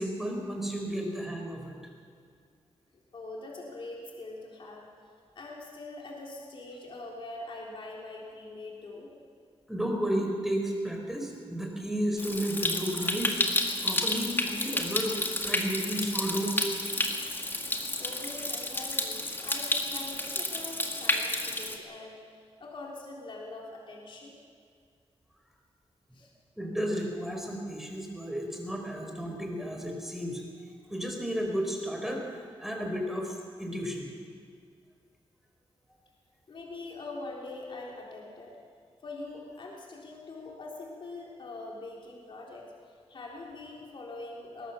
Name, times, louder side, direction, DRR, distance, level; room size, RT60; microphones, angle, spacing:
voice 1, 0.0-1.8 9.7-13.4 13.8-16.6 26.6-30.4 30.9-34.1, equal, 5° right, 1 dB, 4.3 m, -33 dB
voice 2, 3.1-4.9 5.4-9.1 17.8-22.2 22.6-24.3 26.1-26.3 36.5-38.6 39.0-42.7 43.1-44.7, left 2 dB, 55° left, -2 dB, 3.7 m, -43 dB
Stream, 12.2-21.8, left 2 dB, 20° left, 2.1 m, -31 dB
21.5 x 18.0 x 7.0 m, 2.1 s
wide cardioid pair, 120°, 10 cm